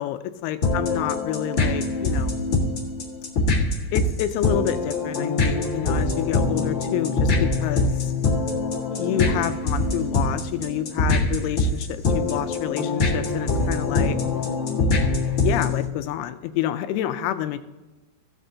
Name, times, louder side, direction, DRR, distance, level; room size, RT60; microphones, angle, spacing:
voice 1, 0.0-2.4 3.9-8.1 8.9-14.2 15.4-17.6, left 12 dB, 80° left, 10 dB, 2.4 m, -28 dB
sound 1, 0.6-15.8, left 3 dB, 45° left, 1.5 m, -23 dB
16.5 x 7.8 x 2.8 m, 1.1 s
omnidirectional pair, 4.8 m